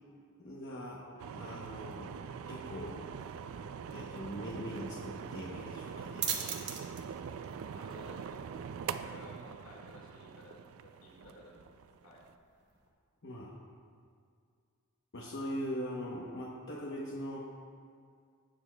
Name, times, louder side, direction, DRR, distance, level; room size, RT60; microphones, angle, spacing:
voice 1, 0.4-2.1 2.5-3.1 3.8-6.3 13.2-13.5 15.1-17.4, equal, 55° left, -4 dB, 0.9 m, -41 dB
sound 1, 1.2-12.3, right 7 dB, 70° right, 0.3 m, -43 dB
sound 2, 5.6-12.9, right 8 dB, 50° right, 0.9 m, -44 dB
voice 2, 7.7-8.5 9.0-12.2, left 1 dB, 80° left, -2 dB, 1.9 m, -55 dB
16.0 x 6.9 x 2.2 m, 2.2 s
head